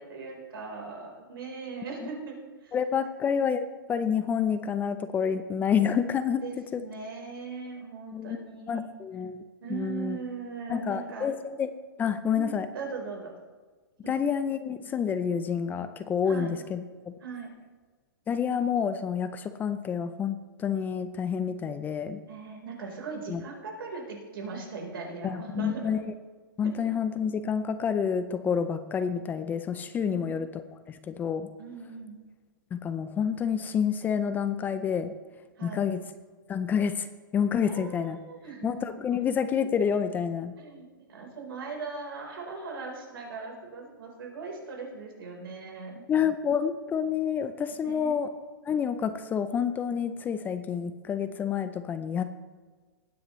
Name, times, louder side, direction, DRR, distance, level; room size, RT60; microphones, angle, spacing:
voice 1, 0.0-2.4 2.6-2.8 3.0-3.1 6.4-8.9 9.6-11.3 12.3-13.3 14.0-14.1 16.3-16.5 17.2-17.5 22.3-26.0 26.6-26.9 30.0-30.5 31.6-32.2 35.6-35.9 37.6-38.7 39.2-39.3 40.6-46.0 47.8-48.2, right 4 dB, 80° right, 0 dB, 4.0 m, -39 dB
voice 2, 2.7-6.4 6.7-6.8 8.1-8.4 8.7-9.4 9.7-10.2 10.7-11.7 12.0-12.7 14.1-17.1 18.3-22.2 23.3-23.4 25.2-26.1 26.6-31.5 32.7-35.1 35.6-36.0 36.5-37.1 37.3-38.2 38.6-40.5 46.1-48.3 48.7-52.2, left 7 dB, 15° left, 11 dB, 0.4 m, -28 dB
20.0 x 9.5 x 3.1 m, 1.4 s
hypercardioid pair, 145°, 12 cm